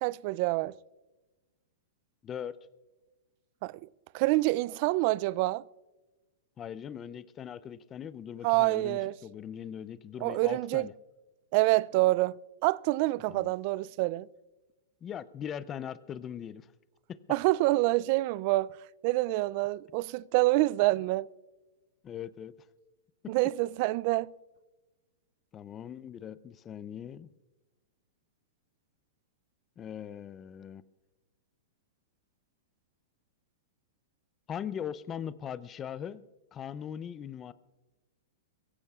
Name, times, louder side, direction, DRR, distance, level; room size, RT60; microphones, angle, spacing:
voice 1, 0.0-0.7 3.6-3.8 4.1-5.6 8.4-9.1 10.2-10.9 11.5-14.3 17.3-18.7 19.0-21.3 23.3-24.3, right 19 dB, 45° right, 0.3 m, -27 dB
voice 2, 2.2-2.6 6.6-10.9 13.3-13.5 15.0-16.7 17.1-17.2 22.0-22.5 23.2-23.3 25.5-27.3 29.8-30.8 34.5-36.2 36.5-37.5, left 9 dB, 25° left, 0.5 m, -40 dB
22.5 x 16.0 x 2.4 m
hypercardioid pair, 140°, 0 cm